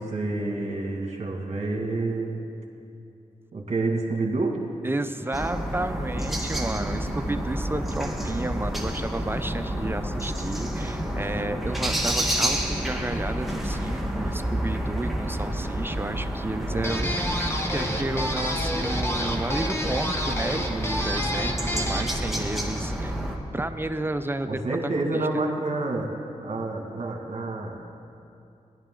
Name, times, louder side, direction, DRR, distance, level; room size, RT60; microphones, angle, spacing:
voice 1, 0.0-2.4 3.5-4.6 16.6-17.3 24.4-26.1 26.4-27.8, right 2 dB, 55° right, 1 dB, 2.0 m, -29 dB
voice 2, 4.8-17.3 17.7-23.2 23.5-24.6 25.0-25.2, right 2 dB, 15° right, 9 dB, 0.6 m, -32 dB
sound 1, 5.3-23.4, right 1 dB, ahead, 1.4 m, -29 dB
sound 2, 16.8-22.2, equal, 20° left, 1.4 m, -30 dB
16.5 x 11.0 x 3.8 m, 2.6 s
cardioid pair, 65°, 13 cm